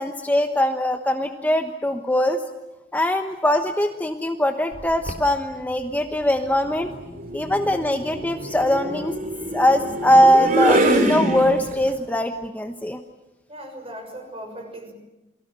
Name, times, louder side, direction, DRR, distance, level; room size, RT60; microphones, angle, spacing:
voice 1, 0.0-2.4 2.9-6.9 7.3-9.2 9.5-13.0, equal, 10° left, 5 dB, 1.1 m, -21 dB
sound 1, 4.7-5.3 6.6-11.9, right 1 dB, 50° right, 3.5 m, -25 dB
voice 2, 13.5-14.9, right 1 dB, 35° right, 5 dB, 6.5 m, -38 dB
29.0 x 22.5 x 7.6 m, 1.0 s
head